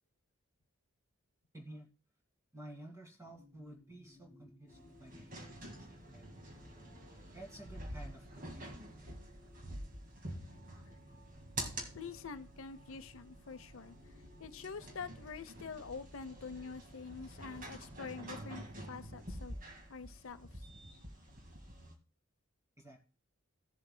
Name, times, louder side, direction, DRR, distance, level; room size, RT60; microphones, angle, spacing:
voice 1, 1.5-1.9 2.5-6.4 7.3-9.1 22.8-23.0, right 1 dB, 15° right, 2.0 m, -53 dB
sound 1, 3.2-15.0, left 2 dB, 70° right, 3.9 m, -65 dB
sound 2, 4.7-21.9, right 1 dB, 40° right, 1.9 m, -48 dB
sound 3, 11.3-17.0, right 2 dB, 90° right, 2.8 m, -63 dB
voice 2, 11.9-13.9 14.4-20.6, left 5 dB, 70° left, 0.7 m, -46 dB
16.5 x 7.5 x 2.2 m
head